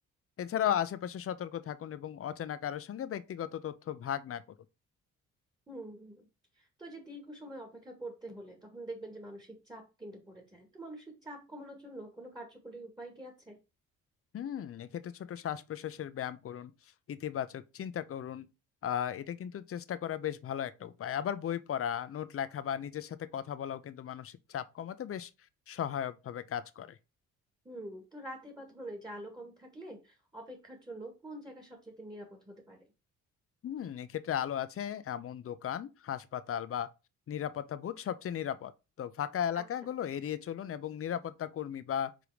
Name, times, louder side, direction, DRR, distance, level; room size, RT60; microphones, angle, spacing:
voice 1, 0.4-4.4 14.3-16.7 17.1-18.5 18.8-25.3 25.7-27.0 33.6-36.9 37.3-38.7 39.0-42.1, left 9 dB, 50° left, 0.7 m, -36 dB
voice 2, 5.7-6.3 6.5-13.6 27.6-32.9 39.5-39.6, right 1 dB, 15° right, 2.0 m, -46 dB
5.1 x 3.8 x 4.8 m
cardioid pair, 90°, 30 cm